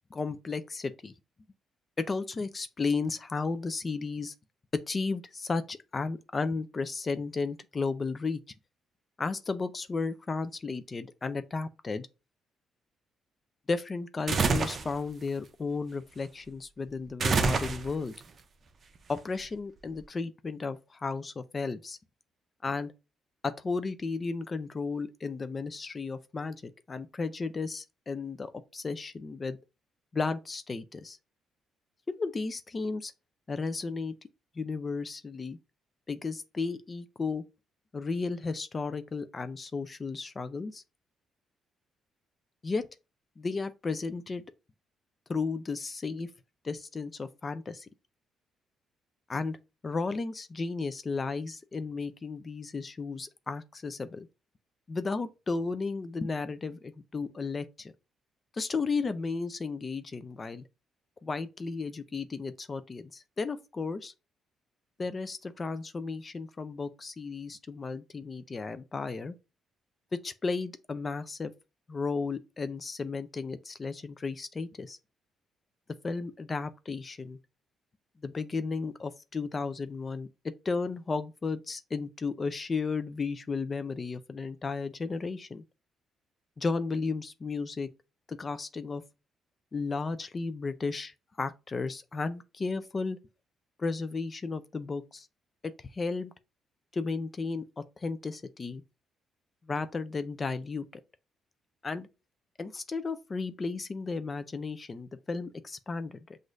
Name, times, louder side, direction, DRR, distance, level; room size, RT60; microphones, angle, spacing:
voice 1, 0.1-1.1 2.0-4.3 4.7-8.4 9.2-12.1 13.7-18.1 19.1-22.0 22.6-22.9 23.4-29.6 30.1-31.2 32.2-33.1 33.5-34.1 34.6-35.6 36.1-37.4 37.9-40.8 42.6-42.9 43.4-44.4 45.3-46.3 46.6-47.9 49.3-49.6 49.8-54.3 54.9-57.9 58.5-60.6 61.2-64.1 65.0-69.3 70.1-71.5 71.9-75.0 76.0-77.4 78.2-80.3 80.6-85.6 86.6-87.9 88.3-89.0 89.7-93.2 93.8-95.3 95.6-96.3 96.9-98.8 99.7-101.0 101.8-102.1 102.6-106.4, left 4 dB, 35° left, 0.4 m, -34 dB
sound 1, 14.3-14.9 17.2-18.1, right 4 dB, 45° right, 0.5 m, -26 dB
6.1 x 2.5 x 2.5 m
cardioid pair, 90°, 0 cm